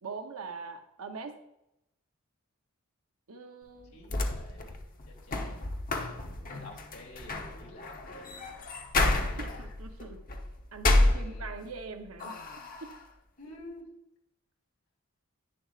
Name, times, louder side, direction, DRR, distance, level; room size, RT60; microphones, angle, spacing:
voice 1, 0.0-1.4 3.3-4.0 9.4-10.2 10.7-12.4 12.8-12.9, right 4 dB, 80° right, 6 dB, 0.8 m, -42 dB
sound 1, 3.8-11.8 12.2-13.0, left 2 dB, 40° left, 0.9 m, -30 dB
voice 2, 3.9-4.8 5.1-5.7 6.0-8.3 9.2-9.6 11.0-11.7 13.4-13.9, left 2 dB, 70° left, -1 dB, 2.8 m, -50 dB
10.5 x 9.5 x 2.4 m, 0.85 s
head